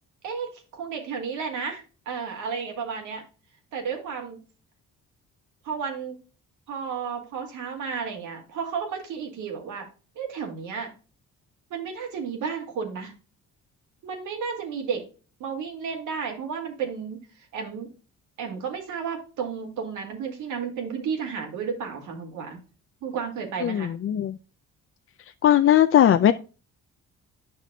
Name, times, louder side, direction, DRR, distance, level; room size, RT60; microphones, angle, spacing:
voice 1, 0.2-3.2 3.7-4.4 5.6-6.2 6.7-9.9 10.2-10.9 11.7-13.1 14.0-15.0 15.4-17.2 17.5-17.9 18.4-22.6 23.0-23.9, right 6 dB, 85° right, 3 dB, 2.2 m, -32 dB
voice 2, 23.6-24.3 25.4-26.3, left 11 dB, 45° left, 9 dB, 0.5 m, -18 dB
9.8 x 5.9 x 2.3 m, 0.34 s
cardioid pair, 90°, 30 cm